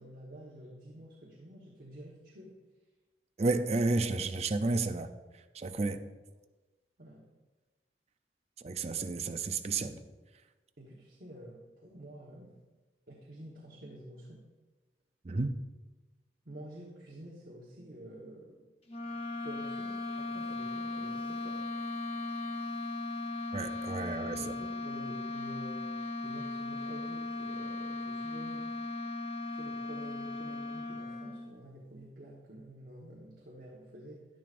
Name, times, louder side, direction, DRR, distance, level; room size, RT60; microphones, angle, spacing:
voice 1, 0.0-2.6 7.0-7.2 10.8-12.6 13.1-14.5 16.4-18.7 19.3-21.6 24.3-25.9 26.2-28.7 29.5-34.3, right 1 dB, 55° right, -4 dB, 1.3 m, -49 dB
voice 2, 3.4-5.1 5.5-6.0 8.6-10.0 15.2-15.6 23.5-24.4, right 3 dB, 35° right, 9 dB, 0.5 m, -31 dB
sound 1, 18.9-31.6, left 2 dB, 35° left, 0.8 m, -37 dB
11.0 x 10.5 x 2.6 m, 1.2 s
head